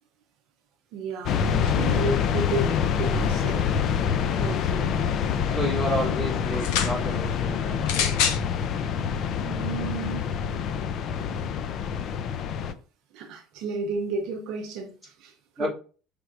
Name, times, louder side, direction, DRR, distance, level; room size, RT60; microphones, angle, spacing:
voice 1, 0.9-3.8 4.4-4.9 9.5-10.2 13.1-15.7, right 3 dB, 60° right, 0.6 m, -33 dB
sound 1, 1.3-12.7, left 7 dB, 45° left, 0.4 m, -26 dB
voice 2, 5.4-8.1 15.6-15.7, equal, ahead, 2.5 m, -30 dB
sound 2, 6.5-7.0 7.8-8.4 9.3-9.4, left 8 dB, 85° left, 0.8 m, -26 dB
5.8 x 3.4 x 2.6 m
cardioid pair, 150°, 0 cm